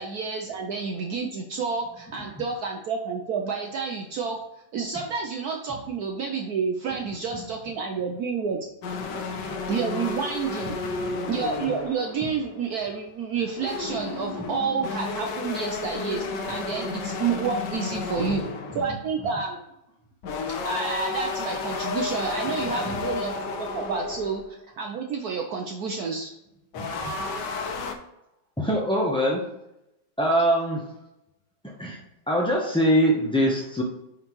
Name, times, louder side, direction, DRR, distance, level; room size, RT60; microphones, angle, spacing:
voice 1, 0.0-4.4 4.7-8.6 9.7-11.0 11.3-18.4 18.7-19.6 20.6-26.3, right 5 dB, 65° right, 2 dB, 1.1 m, -29 dB
sound 1, 8.8-12.7 13.3-19.0 20.2-24.5 26.7-27.9, left 4 dB, 70° left, 1.4 m, -32 dB
voice 2, 28.6-29.4 30.2-30.8 31.8-32.0 32.3-33.8, equal, 5° left, -3 dB, 0.3 m, -22 dB
9.5 x 3.9 x 3.1 m, 0.89 s
omnidirectional pair, 2.0 m